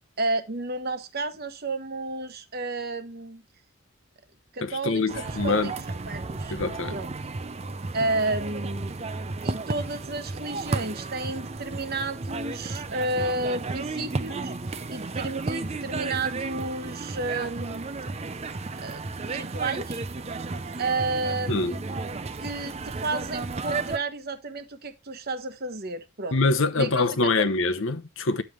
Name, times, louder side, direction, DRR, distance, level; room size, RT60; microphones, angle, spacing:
voice 1, 0.2-3.4 4.5-5.7 6.1-6.6 6.9-7.1 7.9-8.9 9.4-14.5 14.9-18.0 18.8-19.0 19.3-20.0 20.8-21.8 22.4-26.4 26.8-27.0 27.4-27.5, right 2 dB, 45° right, 1.1 m, -31 dB
voice 2, 4.6-5.7 6.5-7.0 21.5-21.7 26.3-28.4, left 3 dB, 60° left, 0.9 m, -24 dB
sound 1, 5.1-24.0, right 3 dB, 30° right, 0.5 m, -33 dB
9.3 x 6.8 x 3.2 m
head